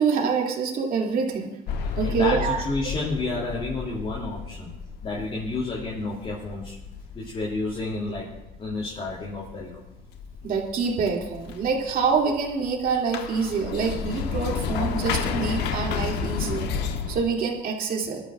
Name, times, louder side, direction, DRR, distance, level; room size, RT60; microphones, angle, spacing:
voice 1, 0.0-1.5 2.0-2.9 10.4-18.2, right 5 dB, 60° right, 0 dB, 2.9 m, -26 dB
sound 1, 1.7-17.2, left 6 dB, 85° left, 1.2 m, -32 dB
voice 2, 1.8-4.7 5.0-6.7 7.1-8.3 8.6-9.8, left 2 dB, 35° left, -5 dB, 3.1 m, -30 dB
25.0 x 12.5 x 2.6 m, 0.88 s
cardioid pair, 110°, 17 cm